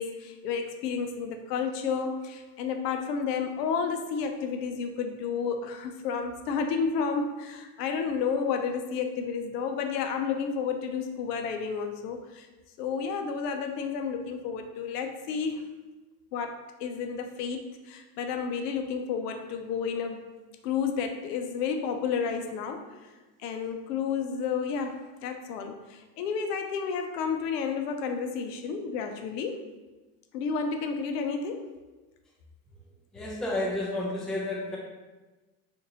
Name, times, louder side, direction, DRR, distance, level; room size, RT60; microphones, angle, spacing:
voice 1, 0.0-12.5 12.8-15.7 16.3-20.2 20.6-23.1 23.4-29.7 30.3-31.7, left 6 dB, 70° left, 6 dB, 0.6 m, -31 dB
voice 2, 33.1-34.8, left 1 dB, ahead, -3 dB, 0.4 m, -31 dB
3.8 x 2.6 x 2.9 m, 1.2 s
hypercardioid pair, 90°, 49 cm